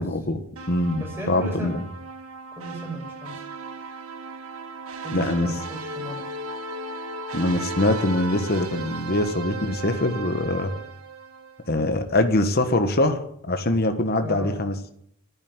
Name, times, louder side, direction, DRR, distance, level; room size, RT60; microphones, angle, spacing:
voice 1, 0.0-1.0 1.3-1.8 5.1-5.5 7.3-10.7 11.7-14.9, left 1 dB, 45° left, 7 dB, 1.4 m, -23 dB
sound 1, 0.6-11.8, right 2 dB, 85° right, 1.5 m, -36 dB
voice 2, 1.0-1.8 2.6-3.4 5.0-6.3 14.2-14.6, right 1 dB, 10° right, 0 dB, 5.6 m, -34 dB
11.5 x 9.7 x 9.6 m, 0.68 s
head